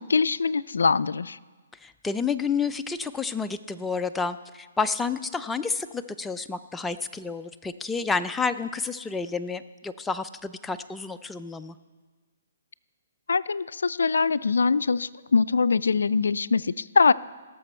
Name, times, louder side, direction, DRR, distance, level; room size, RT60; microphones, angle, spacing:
voice 1, 0.0-1.4 13.3-17.1, left 5 dB, 85° left, 18 dB, 0.3 m, -23 dB
voice 2, 1.8-11.8, left 5 dB, 5° left, 9 dB, 0.4 m, -30 dB
17.5 x 6.9 x 4.3 m, 1.4 s
hypercardioid pair, 150°, 0 cm